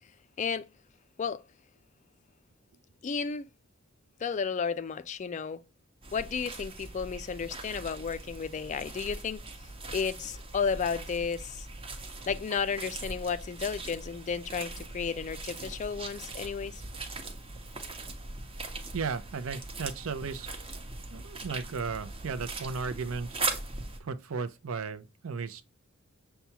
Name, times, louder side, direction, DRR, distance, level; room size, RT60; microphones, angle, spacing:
voice 1, 3.0-3.5 4.2-5.6 6.1-9.4 9.9-11.7 12.3-16.8, left 6 dB, 35° left, 0.3 m, -33 dB
sound 1, 6.0-24.0, right 3 dB, 25° right, 0.8 m, -40 dB
voice 2, 18.9-20.5 21.1-23.4 24.0-25.6, right 5 dB, 65° right, 0.5 m, -35 dB
6.8 x 2.3 x 2.8 m
head